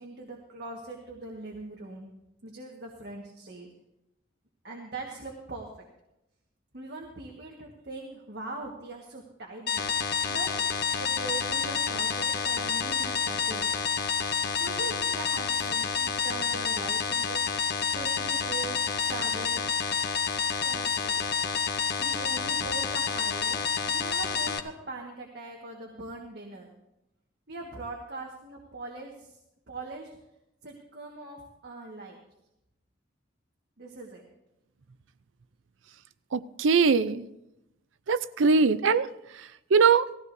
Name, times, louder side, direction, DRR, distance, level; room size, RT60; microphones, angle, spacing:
voice 1, 0.0-2.1 2.4-3.7 4.6-5.7 6.7-10.6 11.0-13.7 14.6-19.7 20.6-21.3 22.0-26.7 27.5-29.4 29.7-30.2 30.6-32.2 33.8-34.2, right 3 dB, 60° right, 0 dB, 1.6 m, -41 dB
sound 1, 9.7-24.6, left 6 dB, 60° left, 0.8 m, -29 dB
voice 2, 36.3-37.3 38.1-39.1 39.7-40.1, right 5 dB, 85° right, 13 dB, 0.5 m, -21 dB
18.5 x 15.0 x 2.7 m, 0.88 s
head